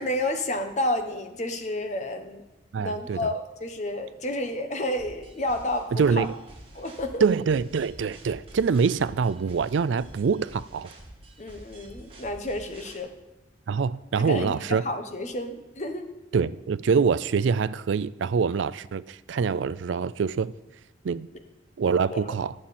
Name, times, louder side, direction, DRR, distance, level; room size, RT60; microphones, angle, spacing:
voice 1, 0.0-2.4 2.8-6.3 6.7-7.2 11.4-13.1 14.2-16.1 22.1-22.2, left 1 dB, 40° left, 1.1 m, -30 dB
voice 2, 2.7-3.3 5.9-6.3 7.2-10.9 13.7-14.8 16.3-20.5 21.0-21.3 21.8-22.5, right 5 dB, 85° right, 0.4 m, -25 dB
sound 1, 5.0-13.0, right 1 dB, 30° right, 2.2 m, -48 dB
19.5 x 7.4 x 4.3 m
head